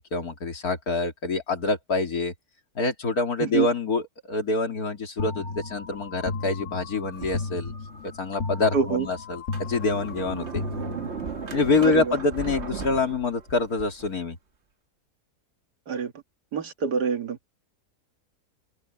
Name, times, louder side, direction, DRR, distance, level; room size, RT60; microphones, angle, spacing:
voice 1, 0.0-2.3 2.8-7.7 8.2-9.4 9.7-10.6 11.5-14.4, left 3 dB, 65° left, 3.0 m, -26 dB
sound 1, 5.2-11.6, left 4 dB, 50° left, 1.4 m, -35 dB
Sliding door, 7.2-8.1 8.6-8.7 9.3-14.2, right 5 dB, 45° right, 1.6 m, -37 dB
voice 2, 8.7-9.1 11.8-12.2 15.9-16.1 16.5-17.4, right 6 dB, 80° right, 2.2 m, -26 dB
open air
omnidirectional pair, 1.7 m